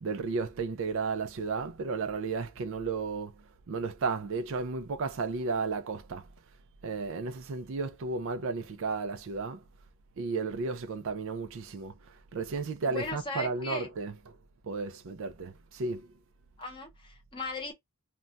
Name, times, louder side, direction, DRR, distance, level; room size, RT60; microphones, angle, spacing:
voice 1, 0.0-3.3 3.7-6.3 6.8-9.6 10.2-14.4 14.6-16.1, right 4 dB, 60° right, 0.4 m, -33 dB
voice 2, 12.9-13.9 16.6-17.7, left 3 dB, 20° left, 0.8 m, -37 dB
2.3 x 2.2 x 3.8 m
head